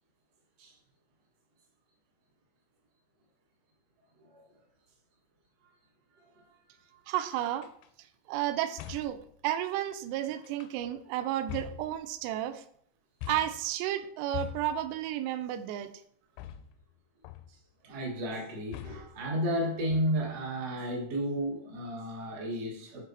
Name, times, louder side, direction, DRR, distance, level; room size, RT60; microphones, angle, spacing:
voice 1, 6.1-6.5 6.9-7.0 17.8-23.1, equal, 60° right, -2 dB, 1.7 m, -33 dB
voice 2, 7.1-7.7 8.3-12.6 13.3-15.9, right 12 dB, 85° right, 10 dB, 2.5 m, -32 dB
sound 1, 7.6-7.9 8.8-9.3 10.4-11.0 11.5-12.4 13.2-13.7 14.3-15.0 16.4-16.9 17.2-17.7 18.7-19.2 19.9-20.4, left 12 dB, 85° left, 2.6 m, -43 dB
7.3 x 4.0 x 4.0 m, 0.64 s
omnidirectional pair, 5.0 m